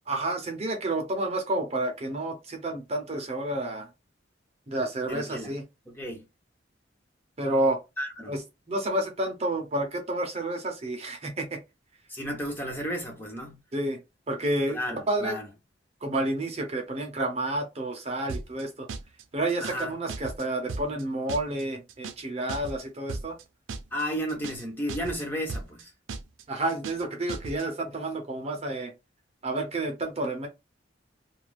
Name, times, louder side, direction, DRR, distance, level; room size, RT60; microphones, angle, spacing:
voice 1, 0.1-3.9 4.7-5.6 7.4-7.8 8.3-8.4 8.7-11.6 13.7-14.0 14.3-14.8 15.1-15.4 16.0-18.9 19.3-23.4 26.5-28.9 29.4-30.5, right 1 dB, 35° right, 0.6 m, -30 dB
voice 2, 5.1-5.5 5.9-6.2 8.0-8.3 12.1-13.6 14.7-15.5 19.6-19.9 23.9-25.9, equal, 10° left, 0.7 m, -33 dB
sound 1, 18.3-18.6 18.9-19.2 19.5-19.8 20.1-20.4 20.7-21.0 21.3-21.6 21.9-22.2 22.5-22.8 23.1-23.4 23.7-24.0 24.3-24.6 24.9-25.2 25.5-25.8 26.1-26.4 26.7-27.0 27.3-27.6, right 4 dB, 90° right, 0.5 m, -36 dB
2.4 x 2.3 x 3.2 m
head